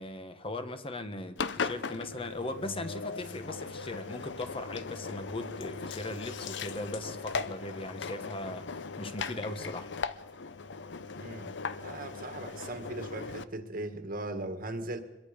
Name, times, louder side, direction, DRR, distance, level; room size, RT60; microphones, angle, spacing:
voice 1, 0.0-8.7 9.0-9.9, left 2 dB, 30° left, 9 dB, 1.3 m, -38 dB
Engine, 1.4-13.4, left 5 dB, 70° left, 0.7 m, -38 dB
voice 2, 11.2-15.0, right 2 dB, 50° right, 8 dB, 1.8 m, -39 dB
24.0 x 22.0 x 5.2 m, 1.1 s
head